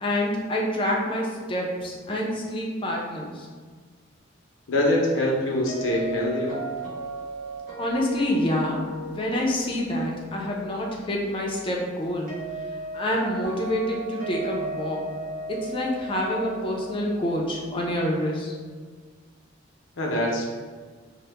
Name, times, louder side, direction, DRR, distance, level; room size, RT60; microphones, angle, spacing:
voice 1, 0.0-3.5 7.8-8.8 9.1-12.3 12.9-15.0 15.5-18.6, left 1 dB, 25° left, -2 dB, 0.4 m, -27 dB
voice 2, 4.7-6.6 20.0-20.5, left 1 dB, 90° left, -1 dB, 0.6 m, -24 dB
sound 1, 5.7-18.5, right 1 dB, 45° right, 0.9 m, -37 dB
2.8 x 2.1 x 3.3 m, 1.5 s
head